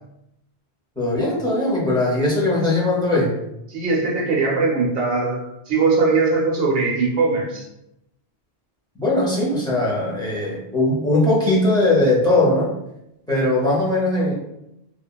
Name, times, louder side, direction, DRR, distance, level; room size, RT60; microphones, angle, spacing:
voice 1, 1.0-3.4 9.0-12.7 13.3-14.3, left 2 dB, 5° left, -5 dB, 0.4 m, -19 dB
voice 2, 3.7-7.7, right 4 dB, 70° right, -2 dB, 0.7 m, -20 dB
2.8 x 2.3 x 2.2 m, 0.85 s
omnidirectional pair, 1.1 m